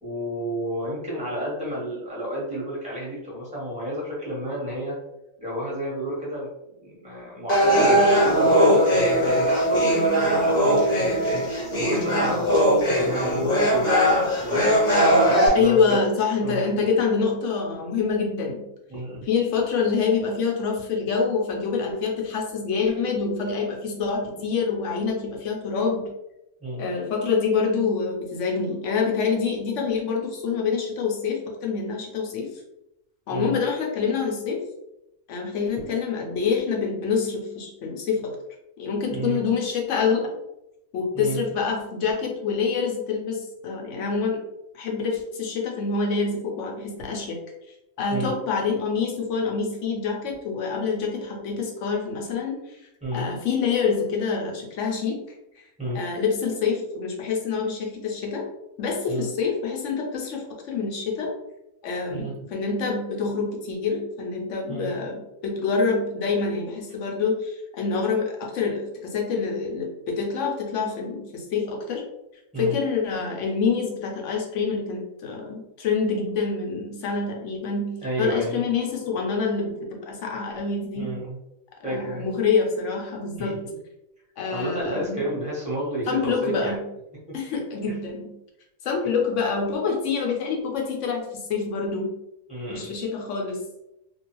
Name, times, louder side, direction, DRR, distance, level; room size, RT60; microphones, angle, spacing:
voice 1, 0.0-5.0 5.4-6.5 6.8-16.0 16.4-16.6 18.9-19.3 26.6-26.8 33.3-33.5 35.7-35.8 39.1-39.4 41.1-41.4 48.1-48.4 53.0-53.3 55.8-56.0 59.1-59.3 62.1-62.5 64.7-64.9 72.5-72.7 78.0-78.6 80.9-81.4 81.8-82.3 83.3-83.6 84.5-86.8 87.3-87.4 92.5-92.9, right 1 dB, 5° right, -6 dB, 0.8 m, -31 dB
sound 1, 7.5-15.5, equal, 35° left, 0.8 m, -20 dB
voice 2, 15.5-18.6 19.3-26.1 26.8-32.5 33.3-34.6 35.3-38.3 38.8-40.3 40.9-44.4 44.7-47.4 48.0-52.8 53.1-55.2 55.9-58.4 58.8-61.3 61.8-72.0 72.6-81.2 81.9-83.6 84.4-85.3 86.1-86.9 87.3-88.3 88.8-92.2 92.7-93.6, left 5 dB, 70° left, 0 dB, 1.0 m, -26 dB
2.6 x 2.2 x 2.9 m, 0.87 s
omnidirectional pair, 1.4 m